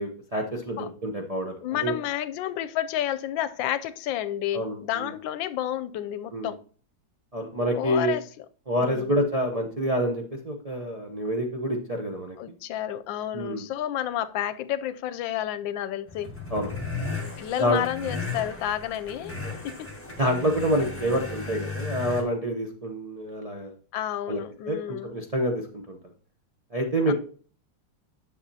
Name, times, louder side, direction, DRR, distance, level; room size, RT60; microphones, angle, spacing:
voice 1, 0.0-2.0 4.5-5.1 6.3-6.5 7.3-8.1 8.7-12.4 13.3-13.6 16.5-16.7 17.6-17.8 19.4-19.5 20.2-23.7 24.3-24.4 24.7-26.0 26.7-27.1, equal, 50° right, 0.4 m, -27 dB
voice 2, 1.6-6.6 7.7-8.5 8.8-9.2 12.4-16.3 17.4-19.9 23.9-25.2 27.1-27.2, left 11 dB, 85° left, 1.3 m, -31 dB
sound 1, 16.1-22.2, left 4 dB, 10° left, 1.3 m, -35 dB
10.0 x 6.6 x 2.7 m
omnidirectional pair, 2.0 m